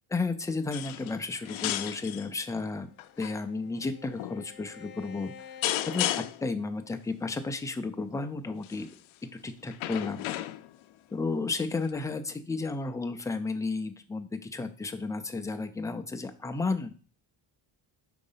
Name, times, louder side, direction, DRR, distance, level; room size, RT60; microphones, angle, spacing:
voice 1, 0.1-2.9 3.2-5.5 5.9-8.9 9.4-10.3 11.1-17.0, left 3 dB, 5° left, 6 dB, 0.4 m, -33 dB
sound 1, 0.7-1.2 1.4-2.3 3.0-3.3 4.2-4.4 5.6-6.5 8.6-8.9 9.7-10.8 11.9-12.0, left 14 dB, 75° left, 0.6 m, -33 dB
Bowed string instrument, 2.7-7.2, left 8 dB, 50° left, 0.8 m, -50 dB
5.1 x 3.8 x 5.5 m, 0.39 s
cardioid pair, 130°, 48 cm